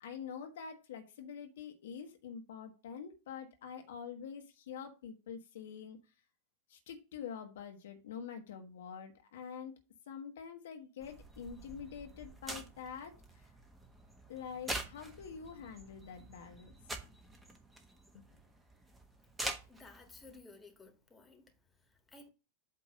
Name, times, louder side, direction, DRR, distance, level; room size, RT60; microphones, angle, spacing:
voice 1, 0.0-6.0 6.7-9.7 10.1-13.5 14.3-16.7 18.1-18.2, left 7 dB, 60° left, 1.1 m, -46 dB
sound 1, 11.0-20.4, right 1 dB, 10° right, 1.2 m, -46 dB
voice 2, 19.7-22.3, left 3 dB, 10° left, 1.6 m, -57 dB
8.4 x 3.0 x 6.3 m
figure-of-eight pair, 90°, 0 cm